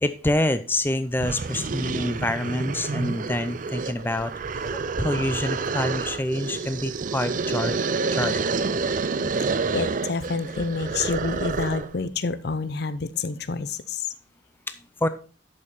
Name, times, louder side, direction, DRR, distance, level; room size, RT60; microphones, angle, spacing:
voice 1, 0.0-7.8 8.1-8.4 15.0-15.1, left 1 dB, 10° left, 10 dB, 0.4 m, -27 dB
sound 1, 0.8-0.9 1.2-12.0, right 4 dB, 45° right, 0.5 m, -28 dB
voice 2, 9.7-14.1, left 4 dB, 60° left, 13 dB, 0.6 m, -28 dB
11.0 x 5.3 x 4.2 m, 0.36 s
head